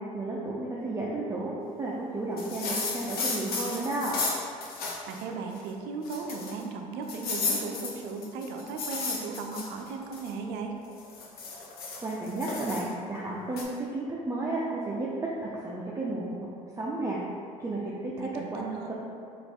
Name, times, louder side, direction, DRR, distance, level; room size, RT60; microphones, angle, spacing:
voice 1, 0.1-4.2 12.0-15.1 15.4-16.5 16.8-17.2 17.6-18.9, right 2 dB, 20° right, -5 dB, 0.5 m, -33 dB
sound 1, 2.4-5.2 5.6-5.7 6.0-6.6 7.1-10.3 10.9-12.8 13.6-13.7, left 4 dB, 65° left, 0.7 m, -33 dB
voice 2, 5.1-10.7 18.2-18.9, right 4 dB, 75° right, 3 dB, 0.5 m, -36 dB
3.9 x 2.5 x 3.5 m, 2.4 s
supercardioid pair, 70°, 17 cm